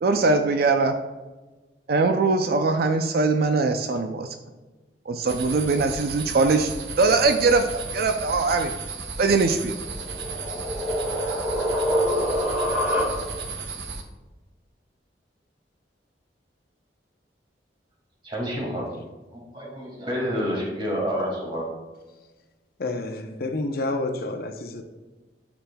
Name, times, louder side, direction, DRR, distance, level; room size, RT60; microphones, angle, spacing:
voice 1, 0.0-1.0 1.9-4.3 5.1-6.7 7.0-8.7 9.2-9.8, right 3 dB, 60° right, 6 dB, 0.4 m, -21 dB
sound 1, 5.3-14.0, right 4 dB, 75° right, 0.8 m, -35 dB
sound 2, 9.8-13.6, equal, 10° right, 1.7 m, -26 dB
voice 2, 18.2-18.9 19.3-21.7, equal, 30° right, -2 dB, 2.1 m, -28 dB
voice 3, 22.8-24.8, left 2 dB, 60° left, 5 dB, 0.7 m, -29 dB
10.0 x 6.0 x 2.3 m, 1.2 s
head